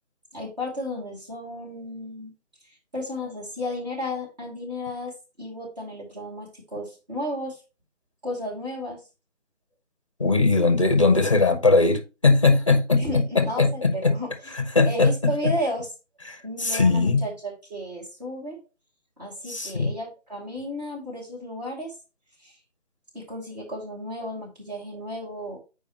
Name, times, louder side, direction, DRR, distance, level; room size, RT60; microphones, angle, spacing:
voice 1, 0.3-2.3 2.6-7.6 8.2-9.0 12.9-14.3 14.8-15.9 16.4-18.6 19.2-21.9 22.4-22.6 23.1-25.6, left 1 dB, 35° right, 2.3 m, -33 dB
voice 2, 10.2-14.2 14.6-15.5 16.3-17.2 19.5-19.9, left 3 dB, 25° left, 0.7 m, -20 dB
6.7 x 4.8 x 2.9 m
figure-of-eight pair, 160°, 36 cm